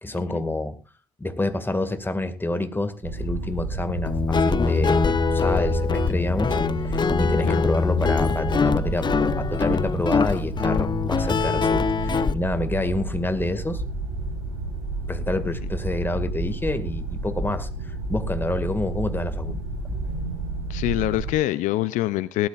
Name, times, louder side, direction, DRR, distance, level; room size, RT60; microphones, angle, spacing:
voice 1, 0.0-0.8 1.2-13.8 15.1-19.6 19.8-20.0, left 2 dB, 15° left, 10 dB, 2.1 m, -28 dB
sound 1, 3.0-21.3, right 2 dB, 85° right, 5.0 m, -31 dB
Guitar, 4.1-12.3, left 5 dB, 35° left, 0.8 m, -23 dB
voice 2, 20.7-22.5, left 15 dB, 70° left, 16 dB, 0.6 m, -25 dB
19.0 x 12.5 x 2.5 m, 0.32 s
hypercardioid pair, 55°, 13 cm